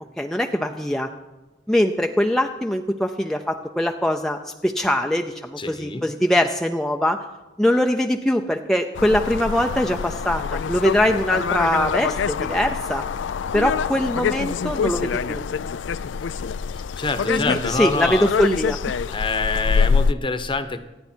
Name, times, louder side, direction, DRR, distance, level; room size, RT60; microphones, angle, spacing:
voice 1, 0.2-1.1 1.7-7.2 7.6-13.0 13.5-15.4 17.3-18.8 19.1-19.2, left 1 dB, 5° left, 3 dB, 0.6 m, -22 dB
voice 2, 5.6-6.0 16.7-18.3 19.1-20.8, left 3 dB, 30° left, 10 dB, 1.0 m, -26 dB
sound 1, 8.9-20.1, left 6 dB, 85° left, 0.4 m, -25 dB
27.0 x 9.4 x 4.5 m, 1.1 s
head